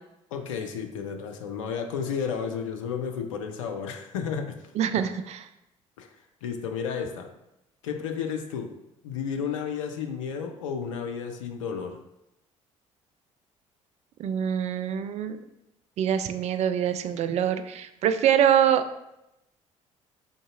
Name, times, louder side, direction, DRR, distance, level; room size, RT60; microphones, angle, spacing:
voice 1, 0.3-4.6 6.0-7.3 7.8-8.7 9.0-12.0, left 6 dB, 70° left, 5 dB, 0.4 m, -32 dB
voice 2, 4.8-5.4 14.2-15.4 16.0-18.8, right 9 dB, 40° right, 10 dB, 0.4 m, -24 dB
3.8 x 3.8 x 2.4 m, 0.86 s
figure-of-eight pair, 50°, 17 cm